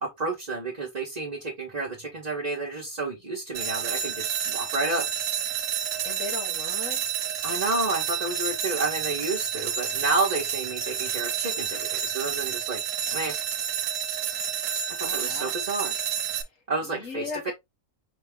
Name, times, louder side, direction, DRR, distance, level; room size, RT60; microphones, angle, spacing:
voice 1, 0.0-5.1 7.4-12.8 13.1-13.3 15.0-15.9 16.7-17.5, right 3 dB, 35° right, 1.1 m, -30 dB
sound 1, 3.5-16.4, right 8 dB, 75° right, 1.1 m, -30 dB
voice 2, 6.0-7.0 15.0-15.6 16.8-17.5, left 4 dB, 75° left, 1.6 m, -37 dB
5.1 x 2.8 x 3.4 m
omnidirectional pair, 1.4 m